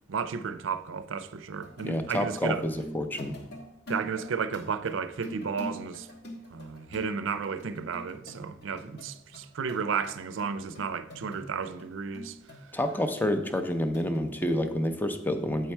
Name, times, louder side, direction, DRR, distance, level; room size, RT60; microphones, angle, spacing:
voice 1, 0.1-2.6 3.9-6.1 6.5-12.4, right 6 dB, 75° right, 0.4 m, -33 dB
sound 1, 1.5-11.9 12.1-14.8 15.0-15.1, left 1 dB, 60° left, 1.1 m, -45 dB
voice 2, 1.8-3.4 12.7-15.7, left 1 dB, 10° left, 0.5 m, -28 dB
8.3 x 4.5 x 4.4 m
head